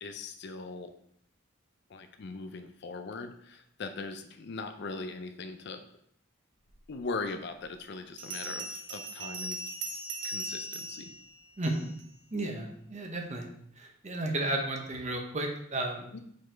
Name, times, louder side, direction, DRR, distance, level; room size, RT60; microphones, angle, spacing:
voice 1, 0.0-0.9 1.9-5.8 6.9-9.6 10.2-11.1 16.1-16.2, left 3 dB, 60° left, 7 dB, 0.5 m, -40 dB
Bell, 7.0-7.1 8.2-12.1, right 2 dB, 65° right, 0.9 m, -39 dB
voice 2, 11.6-11.9 12.3-13.5 13.8-16.1, right 1 dB, 35° right, 3 dB, 0.9 m, -33 dB
5.2 x 4.1 x 4.5 m, 0.68 s
head